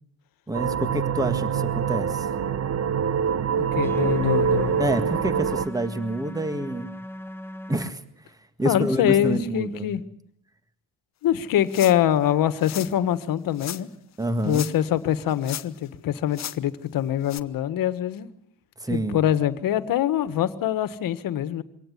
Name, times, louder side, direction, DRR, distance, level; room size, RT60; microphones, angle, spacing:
voice 1, 0.5-2.3 4.8-6.9 7.7-8.0 8.6-9.9 14.2-14.7 18.8-19.2, right 1 dB, 10° right, 10 dB, 1.9 m, -27 dB
sound 1, 0.5-5.7, right 7 dB, 40° right, 1.2 m, -25 dB
voice 2, 3.6-4.8 8.6-10.0 11.2-13.9 14.4-18.3 18.9-21.6, left 11 dB, 60° left, 13 dB, 1.7 m, -24 dB
sound 2, 3.8-7.9, left 1 dB, 5° left, 1.0 m, -38 dB
sound 3, 11.7-12.1 12.6-12.9 13.6-13.8 14.4-14.9 15.2-15.9 16.3-16.6 17.3-17.4, left 11 dB, 45° left, 1.1 m, -36 dB
24.5 x 18.0 x 10.0 m, 0.71 s
cardioid pair, 125°, 38 cm